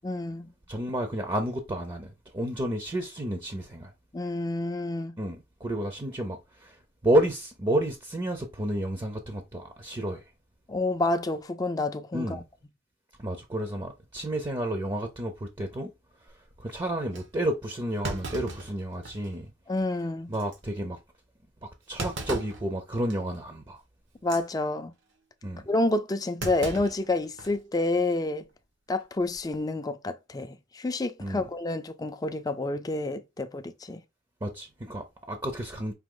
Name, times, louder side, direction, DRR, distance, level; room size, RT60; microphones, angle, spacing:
voice 1, 0.0-0.5 4.1-5.2 10.7-12.4 19.7-20.3 24.2-24.9 25.7-28.5 28.9-34.0, left 2 dB, 20° left, 0.4 m, -29 dB
voice 2, 0.7-3.9 5.2-6.8 7.0-10.2 12.1-12.4 13.2-15.9 16.6-19.5 20.3-21.0 21.6-23.8 25.4-25.6 31.2-31.4 34.4-35.9, right 1 dB, 25° right, 0.6 m, -31 dB
Thump thud, 16.3-16.6 17.1-17.2 18.0-19.4 19.8-19.9 20.3-20.6 22.0-22.6 23.1-23.4 24.1-24.4 26.4-27.6 27.9-28.0 29.2-29.5, right 2 dB, 80° right, 1.2 m, -37 dB
4.9 x 2.9 x 3.7 m
head